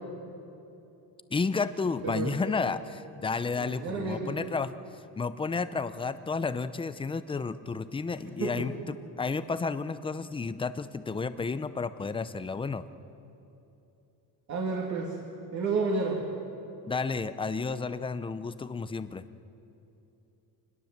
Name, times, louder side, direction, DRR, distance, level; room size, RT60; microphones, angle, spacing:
voice 1, 1.3-12.8 16.9-19.2, left 4 dB, 15° left, 13 dB, 0.6 m, -32 dB
voice 2, 3.6-4.3 8.4-8.6 14.5-15.2 15.5-16.2, right 4 dB, 45° right, -1 dB, 2.7 m, -30 dB
27.0 x 20.5 x 7.4 m, 2.9 s
cardioid pair, 155°, 40 cm